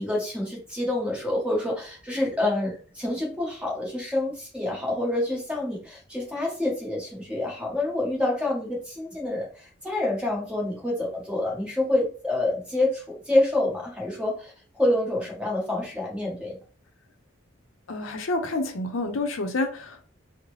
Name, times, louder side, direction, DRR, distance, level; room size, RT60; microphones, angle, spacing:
voice 1, 0.0-9.5 9.8-14.5 14.8-16.6, left 1 dB, 5° right, -2 dB, 1.1 m, -27 dB
voice 2, 17.9-20.1, left 2 dB, 75° left, 5 dB, 0.6 m, -28 dB
3.8 x 2.0 x 3.1 m, 0.39 s
head